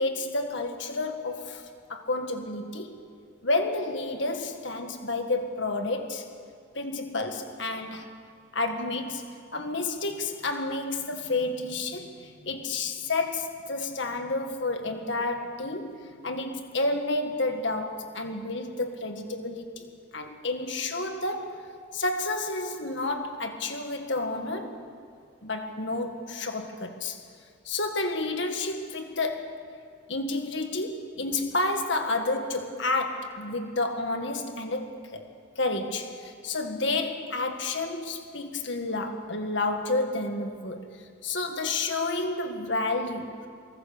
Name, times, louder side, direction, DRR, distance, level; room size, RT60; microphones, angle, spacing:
voice 1, 0.0-1.6 1.9-3.0 3.4-6.2 6.8-8.1 8.5-16.0 16.2-19.8 20.1-24.8 25.4-27.2 27.7-29.6 30.1-35.3 35.6-40.9 41.2-43.5, left 2 dB, 60° left, 5 dB, 1.9 m, -30 dB
24.0 x 22.0 x 6.8 m, 2.2 s
head